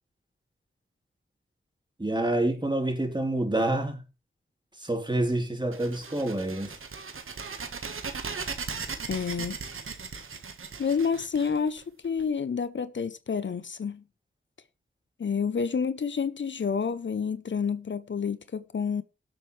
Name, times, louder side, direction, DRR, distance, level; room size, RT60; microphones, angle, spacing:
voice 1, 2.0-4.0 4.8-6.8, right 1 dB, 20° right, 3.5 m, -27 dB
sound 1, 5.7-12.2, right 5 dB, 85° right, 1.4 m, -38 dB
voice 2, 9.1-9.6 10.8-14.0 15.2-19.0, left 6 dB, 65° left, 0.7 m, -29 dB
17.5 x 7.8 x 3.2 m
cardioid pair, 50°, 21 cm